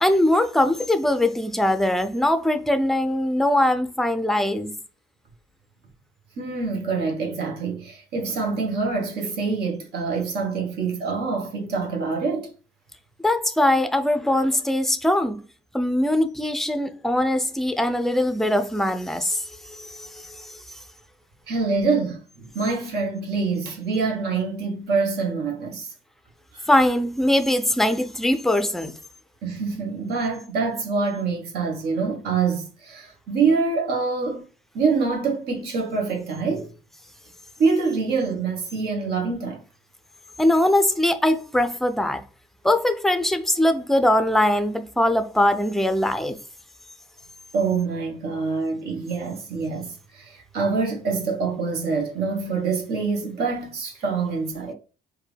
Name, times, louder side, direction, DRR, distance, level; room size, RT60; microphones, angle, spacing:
voice 1, 0.0-4.7 13.2-15.4 15.7-20.5 26.7-29.0 40.4-42.2 42.6-46.4, left 1 dB, ahead, 0.5 m, -21 dB
voice 2, 6.4-12.5 21.5-25.9 26.5-26.7 29.4-34.4 34.7-36.7 37.6-39.6 47.5-54.7, right 4 dB, 70° right, 1.3 m, -25 dB
4.5 x 2.6 x 3.3 m
cardioid pair, 110°, 17 cm